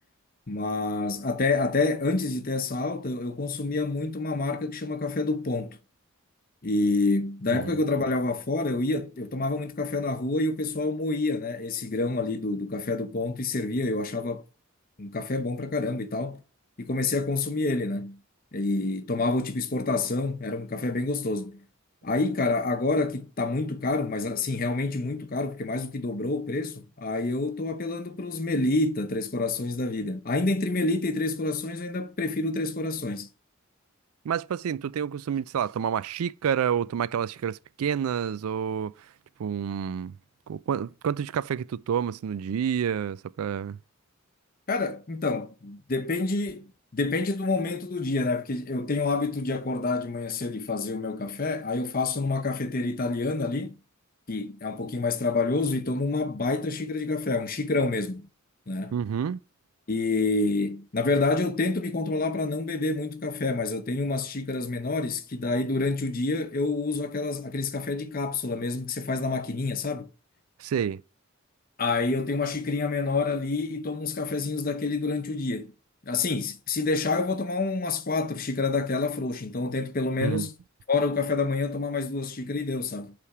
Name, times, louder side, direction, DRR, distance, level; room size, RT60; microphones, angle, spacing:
voice 1, 0.5-5.8 6.6-14.4 15.0-16.4 16.8-18.2 18.5-21.6 22.0-33.3 44.7-53.8 54.3-58.3 58.7-59.0 59.9-70.1 71.8-75.7 76.1-80.5 80.9-83.1, left 3 dB, 40° left, 0.7 m, -28 dB
voice 2, 34.2-38.9 39.4-40.1 40.5-43.8 58.9-59.4 70.6-71.0 80.2-80.5, right 8 dB, 90° right, 0.3 m, -29 dB
8.4 x 3.4 x 4.8 m
head